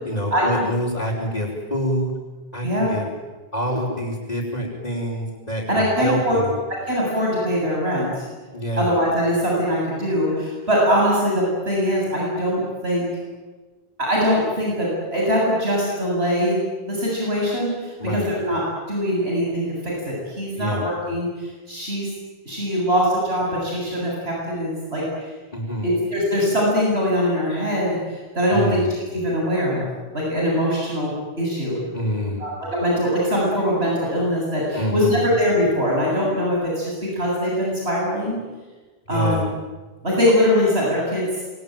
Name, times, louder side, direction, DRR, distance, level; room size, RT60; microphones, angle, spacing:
voice 1, 0.1-2.1 2.5-3.1 3.5-6.6 8.5-8.9 18.0-18.3 20.5-20.8 25.5-26.0 28.5-28.9 31.9-32.5 34.7-35.3 39.1-39.5, equal, 40° left, -5 dB, 5.2 m, -26 dB
voice 2, 5.7-6.4 6.9-8.3 8.8-13.0 14.0-16.6 16.9-18.6 18.9-22.1 22.4-25.0 25.8-28.8 29.1-29.9 30.1-31.8 32.4-38.4 39.1-39.4 40.0-41.3, equal, 85° right, -4 dB, 8.4 m, -22 dB
27.0 x 23.5 x 9.2 m, 1.3 s
omnidirectional pair, 1.0 m